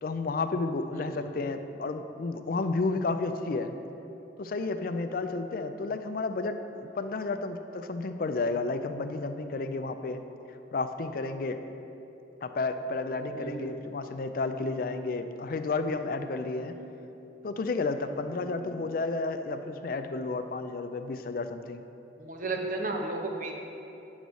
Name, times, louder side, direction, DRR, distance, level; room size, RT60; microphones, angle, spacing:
voice 1, 0.0-3.7 4.4-10.2 10.7-11.6 12.4-16.7 17.4-21.8, left 3 dB, 50° left, 9 dB, 0.4 m, -32 dB
voice 2, 0.9-1.3 13.3-13.7 16.7-16.9 18.3-18.7 22.2-23.5, right 2 dB, 45° right, 2 dB, 0.8 m, -35 dB
9.3 x 4.0 x 6.3 m, 3.0 s
head